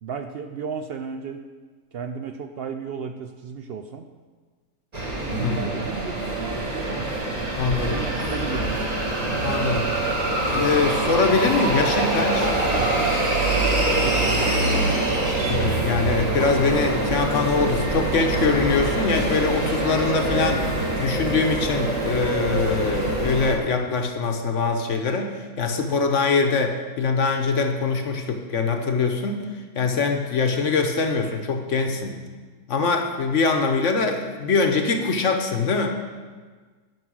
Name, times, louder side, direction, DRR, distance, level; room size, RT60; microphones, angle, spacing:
voice 1, 0.0-1.4 1.9-4.1 5.2-7.1 7.7-9.0 9.5-10.3 10.7-11.0 13.7-14.5, right 6 dB, 80° right, 7 dB, 0.5 m, -35 dB
sound 1, 4.9-23.5, right 1 dB, 30° right, 1.2 m, -25 dB
voice 2, 5.4-5.7 7.6-8.0 9.4-9.8 10.5-12.5 15.4-29.4 29.7-32.2 32.7-35.9, left 4 dB, 55° left, 5 dB, 1.1 m, -23 dB
sound 2, 9.4-20.0, right 5 dB, 65° right, 0.9 m, -32 dB
11.0 x 6.1 x 6.2 m, 1.4 s
omnidirectional pair, 1.6 m